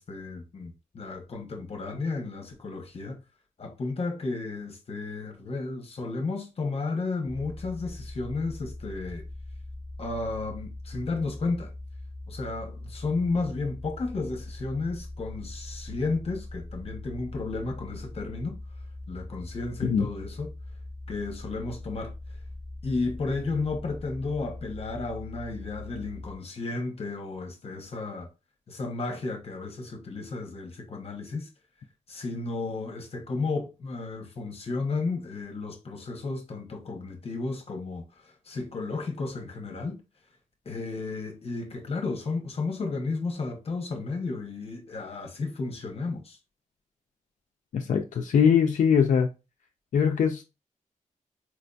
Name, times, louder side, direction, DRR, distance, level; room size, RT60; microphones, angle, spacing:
voice 1, 0.0-3.2 3.6-9.2 10.0-11.7 12.3-18.6 19.1-20.5 21.1-22.1 22.8-28.3 28.7-31.5 32.1-40.0 40.7-46.4, left 3 dB, 50° left, 0.7 m, -33 dB
sound 1, 7.2-26.4, left 2 dB, 20° right, 0.7 m, -41 dB
voice 2, 47.7-49.3 49.9-50.4, left 7 dB, 70° left, 0.4 m, -22 dB
4.4 x 2.5 x 2.2 m
wide cardioid pair, 130°, 13 cm